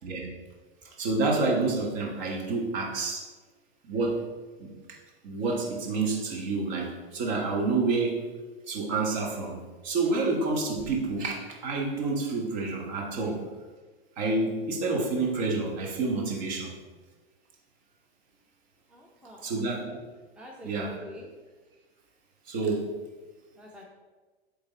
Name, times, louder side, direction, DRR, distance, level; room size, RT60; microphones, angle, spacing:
voice 1, 1.0-3.2 3.9-4.2 4.6-4.7 5.2-8.1 8.7-9.6 9.8-11.4 11.6-13.4 14.2-16.7 19.4-19.9 20.6-20.9 22.5-22.8, right 3 dB, 45° right, -1 dB, 1.6 m, -28 dB
voice 2, 18.9-19.7 20.4-21.3 23.5-23.8, left 1 dB, 5° right, -2 dB, 0.6 m, -46 dB
8.7 x 3.5 x 4.1 m, 1.3 s
figure-of-eight pair, 95°, 31 cm